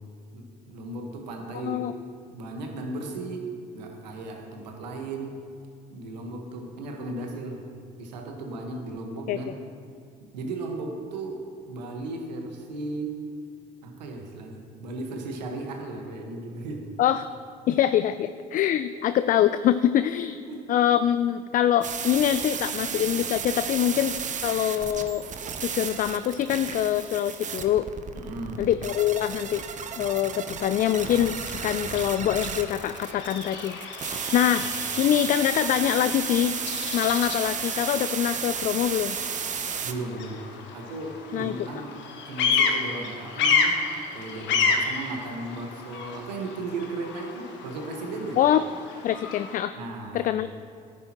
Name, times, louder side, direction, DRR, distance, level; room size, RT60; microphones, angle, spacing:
voice 1, 0.3-1.9 2.3-3.5 3.7-5.4 5.9-7.6 8.0-9.6 10.3-13.2 13.8-16.9 20.3-20.6 28.1-28.6 34.6-34.7 39.8-40.4 40.7-41.9 42.3-43.8 44.1-48.4 49.7-50.3, right 2 dB, 85° right, 2 dB, 1.4 m, -36 dB
voice 2, 17.7-20.4 20.7-24.1 24.4-25.2 25.6-27.9 28.6-29.6 30.0-31.4 31.6-33.8 34.3-34.7 35.0-36.5 36.9-39.2 41.3-41.5 48.4-48.6 49.0-49.8 50.1-50.5, left 11 dB, 40° left, 12 dB, 0.4 m, -24 dB
sound 1, 21.8-39.9, right 7 dB, 35° right, 0.9 m, -33 dB
Bird vocalization bird call bird song, 30.8-49.6, left 5 dB, 60° left, 1.2 m, -31 dB
13.0 x 10.5 x 3.0 m, 2.3 s
hypercardioid pair, 65°, 21 cm